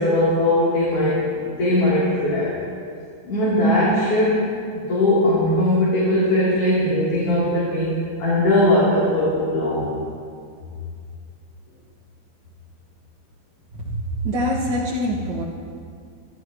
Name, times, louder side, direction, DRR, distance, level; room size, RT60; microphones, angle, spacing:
voice 1, 0.0-2.5 3.3-4.5 4.9-9.9, left 1 dB, 50° left, -10 dB, 4.2 m, -19 dB
voice 2, 13.8-15.4, equal, 45° right, -6 dB, 1.6 m, -24 dB
24.0 x 14.0 x 3.1 m, 2.3 s
omnidirectional pair, 3.5 m